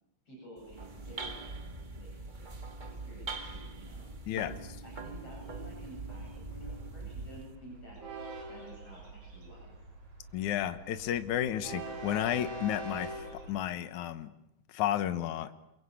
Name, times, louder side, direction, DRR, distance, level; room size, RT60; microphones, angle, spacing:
voice 1, 0.3-1.3 1.9-8.0 8.5-9.8, right 1 dB, 45° left, -2 dB, 9.1 m, -51 dB
sound 1, 0.6-7.6, right 3 dB, 35° right, 0.7 m, -43 dB
Train, 4.9-13.5, right 2 dB, 60° right, 5.5 m, -45 dB
voice 2, 10.3-14.3 14.7-15.5, left 11 dB, 70° left, 11 dB, 2.6 m, -32 dB
28.0 x 24.0 x 8.5 m, 0.80 s
omnidirectional pair, 3.7 m